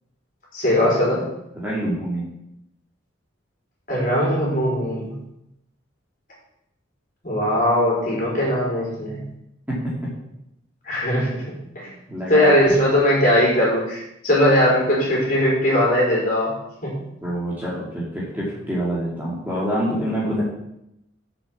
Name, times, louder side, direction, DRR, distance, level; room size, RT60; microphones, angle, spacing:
voice 1, 0.5-1.3 3.9-5.2 7.2-9.2 10.8-11.9 12.3-16.5 16.8-17.0, left 1 dB, 40° left, -5 dB, 4.6 m, -20 dB
voice 2, 1.5-2.2 9.7-10.1 12.1-12.7 17.2-20.4, equal, 10° right, -6 dB, 2.4 m, -26 dB
7.5 x 6.9 x 7.3 m, 0.82 s
head